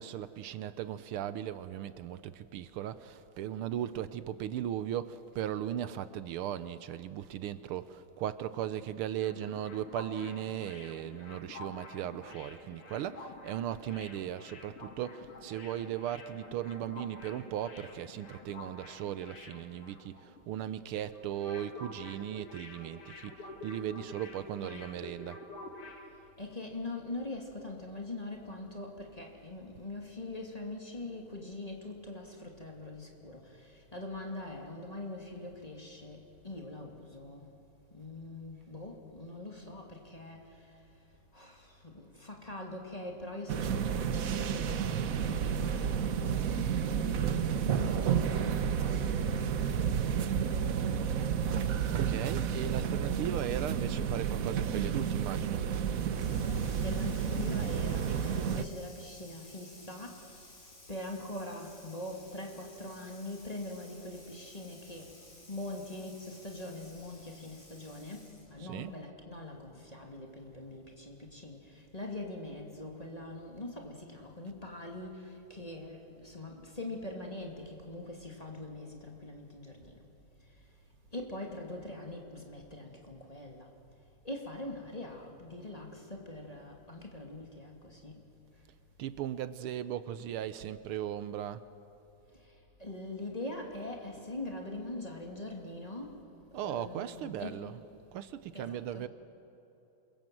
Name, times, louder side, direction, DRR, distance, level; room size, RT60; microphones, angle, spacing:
voice 1, 0.0-25.4 51.9-55.7 68.6-69.0 89.0-91.7 96.5-97.8 98.1-99.1, right 10 dB, 80° right, 1.6 m, -37 dB
sound 1, 8.9-20.4 20.7-20.8 21.1-26.1, left 2 dB, 85° left, 3.2 m, -49 dB
voice 2, 24.4-24.9 26.2-37.5 37.9-46.6 46.9-50.4 56.3-65.2 65.5-80.1 80.4-80.7 81.1-83.7 84.2-88.3 92.3-96.2 96.5-97.7 98.5-99.0, left 2 dB, 15° left, 2.6 m, -43 dB
sound 2, 43.5-58.6, right 7 dB, 60° right, 0.9 m, -31 dB
Water tap faucet / Sink (filling or washing), 56.1-68.6, left 2 dB, 60° left, 6.9 m, -55 dB
27.5 x 22.5 x 7.7 m
omnidirectional pair, 2.4 m